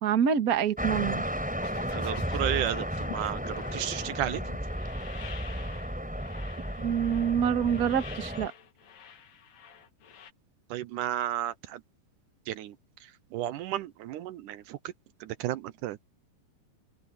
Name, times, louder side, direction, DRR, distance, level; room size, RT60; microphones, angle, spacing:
voice 1, 0.0-1.2 6.8-8.5, right 8 dB, 60° right, 0.9 m, -26 dB
sound 1, 0.8-8.5, equal, ahead, 3.6 m, -34 dB
sound 2, 1.6-10.3, left 8 dB, 55° left, 2.8 m, -47 dB
voice 2, 1.9-4.4 10.7-11.8 12.5-12.8 13.3-14.9 15.2-16.1, right 13 dB, 80° right, 2.0 m, -33 dB
omnidirectional pair, 4.0 m